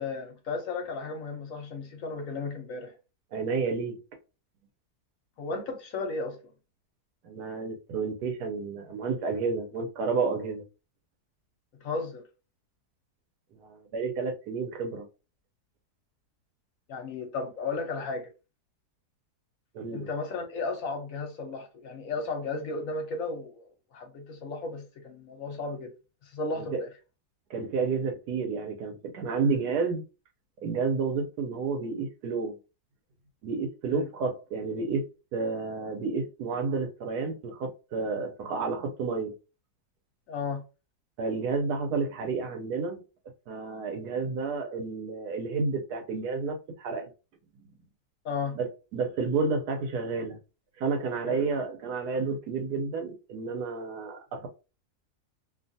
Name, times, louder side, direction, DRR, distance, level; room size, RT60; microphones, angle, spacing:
voice 1, 0.0-2.9 5.4-6.4 11.8-12.2 16.9-18.3 19.9-25.9 26.2-26.9 33.9-34.1 40.3-40.6 48.2-48.6 51.2-51.5, left 3 dB, 65° left, 1.1 m, -34 dB
voice 2, 3.3-4.0 7.2-10.6 13.5-15.1 19.7-20.1 26.6-26.8 27.5-30.0 30.6-32.6 33.4-35.1 35.3-39.3 41.2-43.0 43.5-47.1 48.5-50.4 50.8-54.5, right 4 dB, 85° right, 1.3 m, -30 dB
2.8 x 2.3 x 2.6 m
omnidirectional pair, 1.7 m